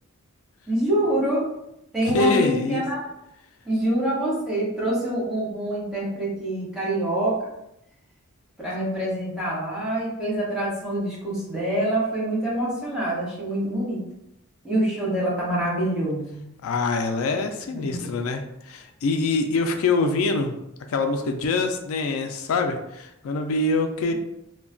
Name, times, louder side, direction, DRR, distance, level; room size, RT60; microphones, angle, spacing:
voice 1, 0.7-1.4 1.9-3.0 3.6-7.4 8.6-14.0 14.6-16.5 17.7-18.2, right 1 dB, 5° right, -7 dB, 1.0 m, -26 dB
voice 2, 2.0-2.8 16.6-18.4 18.7-20.5 20.9-24.1, left 3 dB, 80° left, 5 dB, 0.3 m, -24 dB
2.3 x 2.2 x 3.7 m, 0.81 s
head